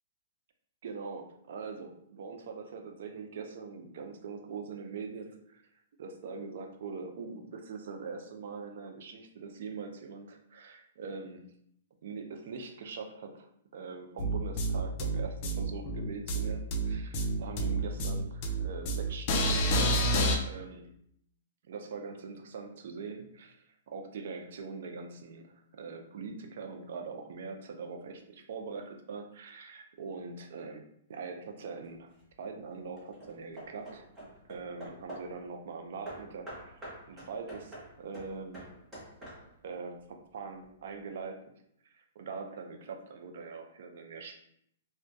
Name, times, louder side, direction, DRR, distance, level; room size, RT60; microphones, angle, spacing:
voice 1, 0.8-5.6 6.0-11.4 12.0-20.1 20.4-20.9 21.6-32.1 32.4-34.0 34.5-38.6 39.6-41.4 41.9-44.4, right 5 dB, 65° right, 4 dB, 0.4 m, -42 dB
sound 1, 14.2-20.4, right 1 dB, 40° left, 0.4 m, -28 dB
Hammer / Wood, 31.8-32.3 33.0-35.4 36.1-39.7, right 1 dB, 15° right, 0.9 m, -47 dB
2.2 x 2.1 x 2.6 m, 0.71 s
hypercardioid pair, 140°, 0 cm